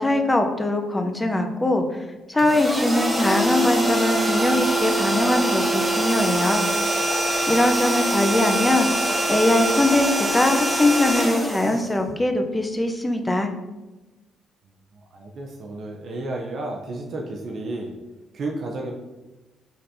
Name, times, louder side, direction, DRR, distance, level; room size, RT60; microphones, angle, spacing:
voice 1, 0.0-1.8 2.3-6.6 7.5-8.9 9.3-13.5, left 2 dB, 15° left, 5 dB, 0.6 m, -21 dB
sound 1, 2.4-12.4, right 1 dB, 5° right, 0.9 m, -24 dB
Wind instrument woodwind instrument, 3.8-10.4, right 3 dB, 90° left, 1.3 m, -38 dB
voice 2, 14.9-17.9 18.3-18.9, right 2 dB, 55° right, 0 dB, 0.6 m, -32 dB
5.6 x 3.3 x 2.7 m, 1.1 s
cardioid pair, 90°, 0 cm